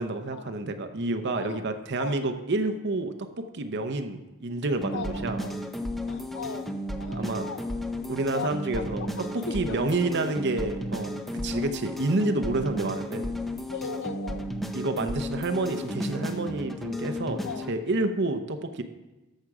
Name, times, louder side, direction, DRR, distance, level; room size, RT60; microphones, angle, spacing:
voice 1, 0.0-5.4 7.1-7.5 8.1-13.3 14.7-17.4 17.7-18.8, right 2 dB, 55° right, 7 dB, 0.7 m, -29 dB
voice 2, 1.3-1.7 2.0-2.2 4.9-5.6 6.1-6.7 7.0-7.8 8.3-10.2 10.6-10.7 11.5-11.7 13.7-14.6 17.4-17.7, left 5 dB, 60° left, 11 dB, 0.6 m, -38 dB
sound 1, 4.8-17.7, left 1 dB, ahead, 0.6 m, -33 dB
13.0 x 6.1 x 4.8 m, 1.1 s
head